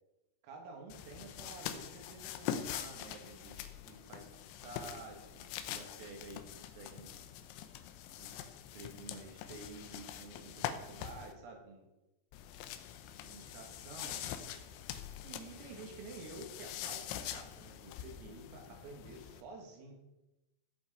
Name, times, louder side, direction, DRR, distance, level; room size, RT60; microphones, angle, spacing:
voice 1, 0.4-4.3 4.6-7.2 8.2-8.4 8.7-11.9 13.2-14.4 15.2-19.9, right 3 dB, 85° right, 1 dB, 4.8 m, -51 dB
sound 1, 0.9-11.3 12.3-19.4, left 10 dB, 90° left, 3.6 m, -44 dB
17.0 x 7.7 x 4.6 m, 0.98 s
omnidirectional pair, 5.9 m